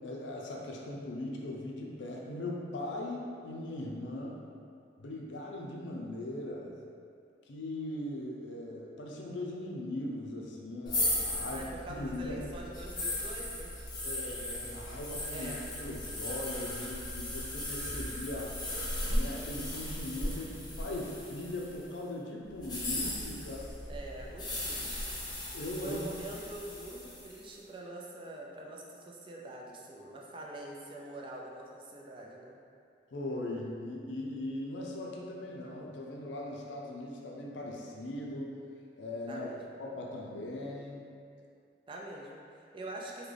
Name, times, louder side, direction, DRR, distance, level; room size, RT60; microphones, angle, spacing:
voice 1, 0.0-4.4 5.0-6.7 7.5-11.7 12.0-12.5 14.0-18.6 19.1-23.7 25.5-26.0 33.1-38.5 39.0-39.5 39.8-41.0, left 1 dB, 85° left, -1 dB, 0.4 m, -39 dB
sound 1, 10.9-21.8 22.6-27.4, left 1 dB, 25° left, 0.6 m, -37 dB
voice 2, 11.4-13.7 15.3-15.6 23.9-25.1 25.8-32.6 39.3-39.8 41.9-43.3, right 2 dB, 30° right, -2 dB, 0.4 m, -44 dB
3.7 x 2.2 x 3.2 m, 2.4 s
head